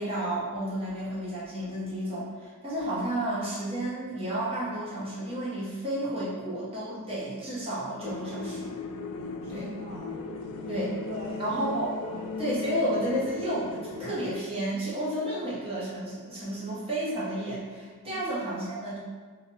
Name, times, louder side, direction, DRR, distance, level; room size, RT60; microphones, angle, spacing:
voice 1, 0.0-8.7 9.5-9.7 10.7-11.0 11.4-12.0 12.4-19.0, right 1 dB, 25° right, -8 dB, 1.1 m, -31 dB
sound 1, 8.0-14.4, left 4 dB, 70° left, 0.3 m, -37 dB
voice 2, 9.4-10.1 10.7-11.6 12.0-12.4 18.0-18.2, equal, 65° right, -4 dB, 0.5 m, -43 dB
2.8 x 2.4 x 4.1 m, 1.5 s
head